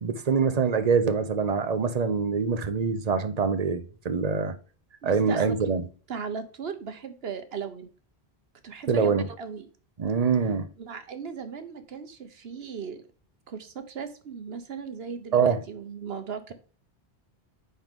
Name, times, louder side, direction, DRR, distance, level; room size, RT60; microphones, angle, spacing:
voice 1, 0.0-4.6 5.0-5.8 8.9-9.2 10.0-10.7 15.3-15.6, right 5 dB, 40° right, 0.9 m, -24 dB
voice 2, 5.0-5.6 6.1-7.9 8.6-9.7 10.8-13.0 13.5-16.5, right 6 dB, 75° right, 1.1 m, -37 dB
9.4 x 4.0 x 3.6 m
omnidirectional pair, 1.0 m